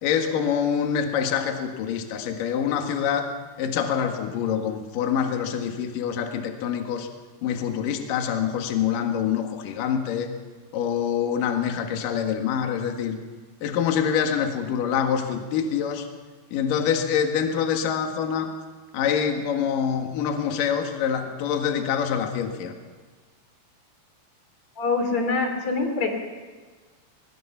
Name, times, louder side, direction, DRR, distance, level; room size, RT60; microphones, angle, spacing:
voice 1, 0.0-3.3 3.6-7.1 7.4-10.3 10.7-13.2 13.6-16.1 16.5-18.5 18.9-22.7, left 8 dB, 60° left, 4 dB, 3.0 m, -25 dB
voice 2, 24.8-26.1, left 4 dB, 45° left, 4 dB, 3.7 m, -24 dB
23.0 x 21.5 x 5.8 m, 1.4 s
omnidirectional pair, 5.0 m